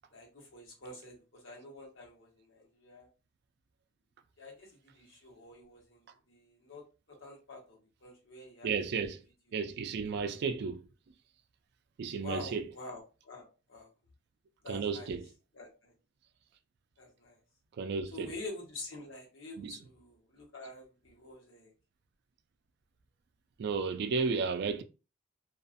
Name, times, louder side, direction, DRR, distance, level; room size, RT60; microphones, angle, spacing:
voice 1, 0.1-3.1 4.4-6.9 7.2-8.7 9.6-9.7 12.2-13.9 14.6-15.1 15.5-15.9 17.0-17.4 18.1-21.7, left 2 dB, 80° left, 1.0 m, -47 dB
voice 2, 8.6-9.2 9.5-10.9 12.0-12.8 14.7-15.3 17.8-18.4 19.6-19.9 23.6-24.8, right 5 dB, 60° right, 0.3 m, -33 dB
2.4 x 2.4 x 2.5 m
head